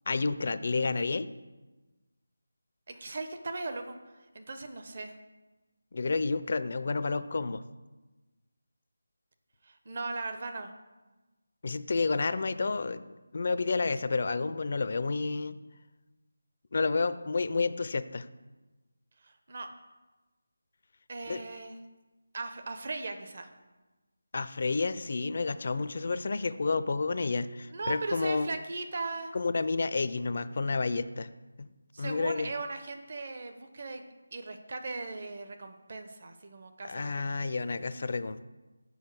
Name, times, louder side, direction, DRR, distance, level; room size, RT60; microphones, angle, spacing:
voice 1, 0.1-1.3 5.9-7.6 11.6-13.0 13.3-15.6 16.7-18.3 21.3-21.4 24.3-28.5 29.3-31.3 31.6-31.7 32.0-32.5 36.8-38.5, left 3 dB, 50° left, 14 dB, 0.4 m, -30 dB
voice 2, 2.9-4.0 4.3-5.2 9.6-10.7 19.2-19.7 21.1-21.8 22.3-23.5 27.7-29.3 31.9-34.0 34.3-37.5, right 3 dB, 45° right, 6 dB, 0.9 m, -38 dB
6.3 x 5.1 x 6.6 m, 1.2 s
figure-of-eight pair, 160°, 0 cm